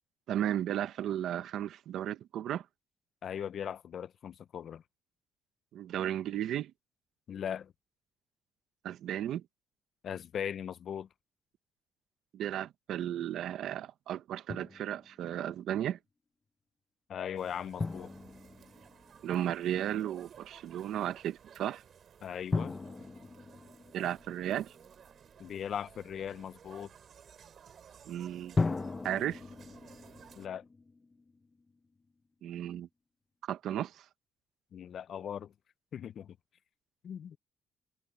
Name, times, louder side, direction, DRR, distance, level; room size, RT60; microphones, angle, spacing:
voice 1, 0.3-2.6 5.7-6.7 8.8-9.4 12.3-16.0 19.2-21.8 23.9-24.7 28.0-28.6 29.0-29.4 32.4-32.9 33.5-34.0, right 11 dB, 80° right, 1.2 m, -34 dB
voice 2, 3.2-4.8 7.3-7.7 10.0-11.1 17.1-18.1 22.2-22.8 25.4-26.9 30.4-30.6 34.7-35.5 35.9-36.4 37.0-37.4, left 8 dB, 60° left, 0.6 m, -39 dB
Drum, 14.5-15.3 17.8-19.6 22.5-25.0 28.6-31.7, left 3 dB, 25° left, 1.0 m, -37 dB
sound 1, 17.4-30.5, right 8 dB, 55° right, 3.5 m, -57 dB
cardioid pair, 90°, 0 cm